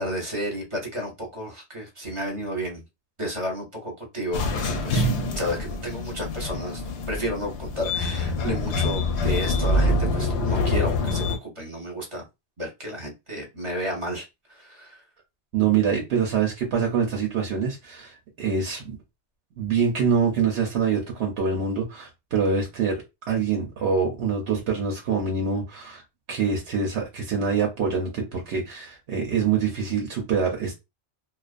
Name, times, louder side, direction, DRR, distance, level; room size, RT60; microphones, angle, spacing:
voice 1, 0.0-2.8 3.2-5.1 5.4-12.3 12.6-15.0, equal, 30° right, -1 dB, 0.8 m, -32 dB
sound 1, 4.3-11.4, left 2 dB, 85° left, 0.9 m, -25 dB
voice 2, 15.5-19.0 19.6-26.0 26.3-30.7, right 6 dB, 75° right, 1 dB, 1.0 m, -25 dB
2.4 x 2.2 x 2.4 m, 0.23 s
omnidirectional pair, 1.1 m